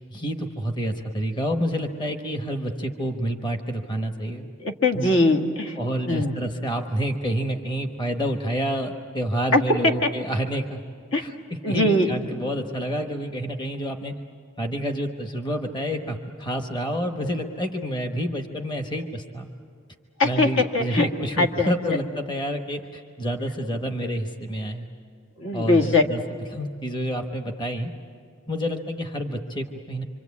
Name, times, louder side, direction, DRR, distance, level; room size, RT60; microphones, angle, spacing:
voice 1, 0.1-4.5 5.0-5.1 5.8-10.8 11.2-14.1 14.6-19.5 20.2-24.9 25.5-27.9 28.5-30.0, equal, 20° left, 4 dB, 1.1 m, -28 dB
voice 2, 4.6-5.8 6.1-6.3 9.5-9.6 10.0-10.1 11.1-11.2 11.6-12.1 20.2-21.1 21.4-22.0 25.4-26.0, left 2 dB, 70° left, 3 dB, 1.8 m, -21 dB
26.0 x 26.0 x 8.4 m, 2.3 s
head